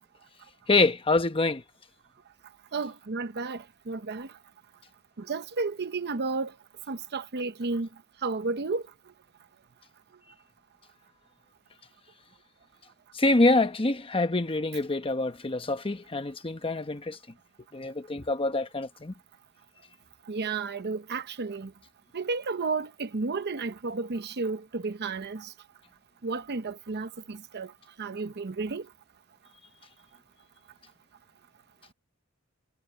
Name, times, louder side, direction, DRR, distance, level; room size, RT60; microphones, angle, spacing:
voice 1, 0.7-1.6 13.1-17.2 17.7-19.1, left 2 dB, 25° left, 1.0 m, -25 dB
voice 2, 2.7-4.3 5.2-6.5 6.9-7.9 8.2-8.8 20.3-21.7 22.1-25.5 26.2-27.7 28.0-28.9, right 4 dB, 50° right, 0.8 m, -32 dB
head